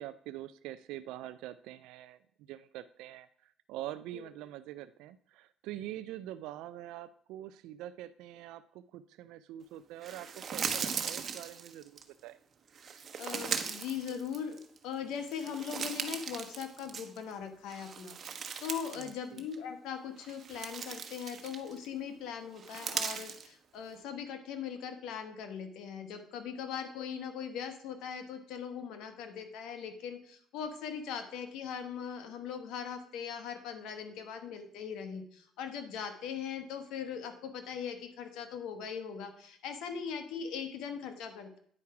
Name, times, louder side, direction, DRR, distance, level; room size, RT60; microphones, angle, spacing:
voice 1, 0.0-12.4 18.9-19.4, right 13 dB, 85° right, 12 dB, 0.3 m, -45 dB
sound 1, 10.0-12.0 12.7-14.8 15.2-17.3 17.7-19.1 19.4-19.6 20.2-21.9 22.6-23.5, right 6 dB, 45° right, 1.0 m, -38 dB
voice 2, 13.1-18.2 18.6-41.6, left 7 dB, 80° left, 8 dB, 1.2 m, -40 dB
9.7 x 4.7 x 5.7 m, 0.63 s
cardioid pair, 100°, 0 cm